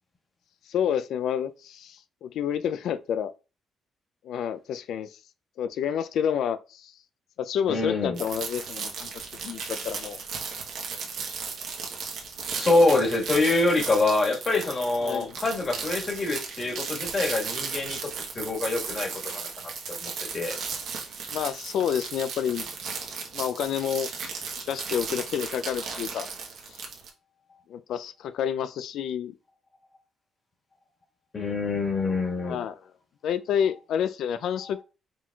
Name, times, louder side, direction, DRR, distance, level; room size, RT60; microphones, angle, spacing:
voice 1, 0.7-3.3 4.2-5.2 5.6-6.9 7.4-9.1 9.4-10.2 15.0-15.4 21.3-22.7 23.3-24.1 24.7-26.3 26.7-26.8 27.7-29.3 32.4-32.8 33.2-34.8, left 8 dB, 75° left, 0.4 m, -29 dB
voice 2, 7.7-8.2 12.5-18.1 18.3-20.6 31.3-32.6, left 2 dB, 35° left, 1.6 m, -25 dB
sound 1, 8.2-27.1, right 5 dB, 75° right, 1.0 m, -35 dB
4.9 x 3.6 x 2.4 m
cardioid pair, 90°, 0 cm